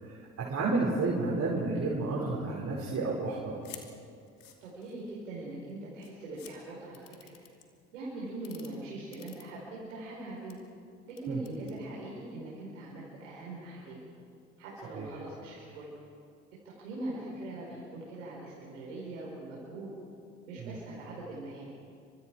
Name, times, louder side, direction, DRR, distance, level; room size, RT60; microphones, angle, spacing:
voice 1, 0.0-3.5 11.3-11.4 14.9-15.1 20.6-20.7, right 3 dB, 45° right, -4 dB, 5.5 m, -31 dB
sound 1, 3.6-3.9 4.3-5.1 5.7-5.8 6.0-6.5 6.9-7.6 8.3-8.7 9.1-9.9 10.3-10.5 11.1-11.8, left 10 dB, 60° left, 2.9 m, -50 dB
voice 2, 4.6-7.4 7.9-10.6 11.1-14.0 14.6-15.9 16.6-19.9 20.5-21.6, right 2 dB, 85° right, -6 dB, 4.6 m, -42 dB
30.0 x 25.0 x 4.7 m, 2.4 s
hypercardioid pair, 60°, 38 cm